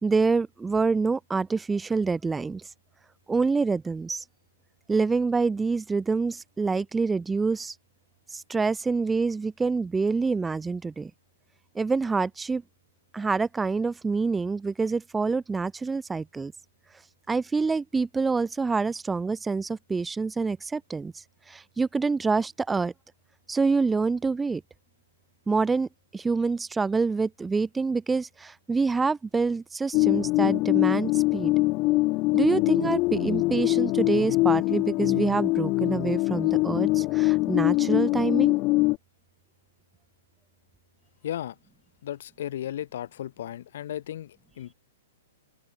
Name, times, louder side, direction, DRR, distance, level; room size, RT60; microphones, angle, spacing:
voice 1, 0.0-2.6 3.3-4.2 4.9-7.7 8.3-11.1 11.7-12.6 13.1-16.5 17.3-22.9 23.5-24.6 25.5-25.9 26.1-31.5 32.3-38.6, right 4 dB, 5° right, 2.0 m, -26 dB
sound 1, 29.9-39.0, left 22 dB, 30° left, 0.3 m, -23 dB
voice 2, 41.2-41.6 42.0-44.7, left 11 dB, 60° left, 3.1 m, -35 dB
open air
hypercardioid pair, 160°, 0 cm